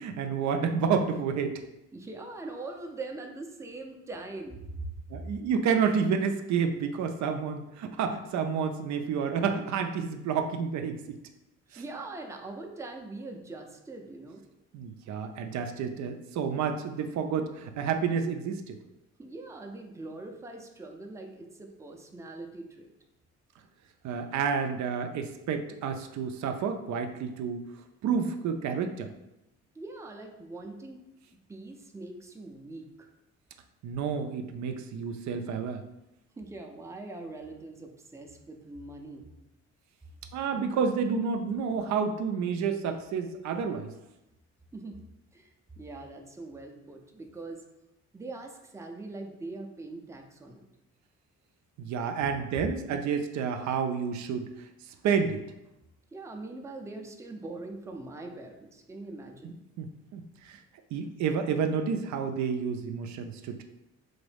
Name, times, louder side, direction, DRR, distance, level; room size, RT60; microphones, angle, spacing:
voice 1, 0.0-1.6 5.1-11.2 14.7-18.8 24.0-27.6 28.0-29.1 33.8-35.8 40.3-43.9 51.8-54.5 55.0-55.4 59.4-60.6 60.9-63.6, right 6 dB, 70° right, 6 dB, 0.4 m, -30 dB
voice 2, 1.9-5.0 11.7-14.4 19.2-22.9 29.7-31.0 31.5-33.1 36.4-39.3 44.7-45.0 45.3-45.5 45.8-47.6 48.1-50.6 52.6-52.9 56.1-59.6, right 2 dB, 10° right, 3 dB, 0.5 m, -42 dB
3.9 x 2.6 x 3.3 m, 0.91 s
cardioid pair, 90°, 30 cm